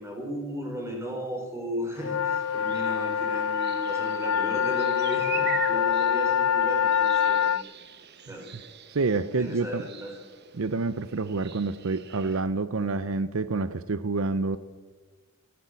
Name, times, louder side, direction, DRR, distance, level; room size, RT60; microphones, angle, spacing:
voice 1, 0.0-7.5 8.3-8.4 9.4-10.1, equal, 15° right, 1 dB, 4.2 m, -35 dB
sound 1, 2.0-7.6, left 8 dB, 75° left, 0.4 m, -25 dB
sound 2, 2.4-12.4, right 8 dB, 50° right, 1.1 m, -42 dB
voice 2, 8.9-9.8 10.5-14.6, right 3 dB, 75° right, 14 dB, 0.6 m, -28 dB
15.0 x 11.5 x 8.2 m, 1.4 s
head